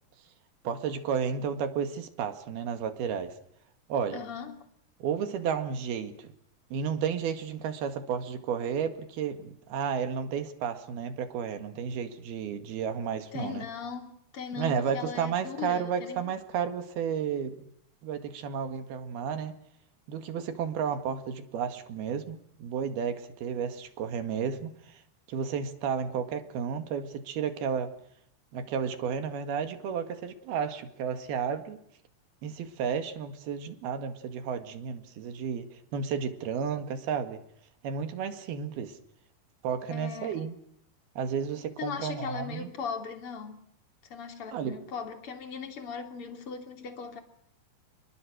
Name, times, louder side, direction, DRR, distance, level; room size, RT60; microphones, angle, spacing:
voice 1, 0.6-3.4 3.9-4.2 5.0-6.3 6.7-13.7 14.6-17.7 18.0-19.6 20.1-25.0 25.3-27.9 28.5-31.8 32.4-37.4 37.8-39.0 39.6-40.6 41.2-42.7 44.5-44.7, right 7 dB, 65° right, 3.7 m, -32 dB
voice 2, 4.1-4.6 13.3-16.3 39.9-40.4 41.8-43.6 44.1-47.2, left 6 dB, 35° left, 3.4 m, -38 dB
30.0 x 22.0 x 6.4 m
omnidirectional pair, 4.9 m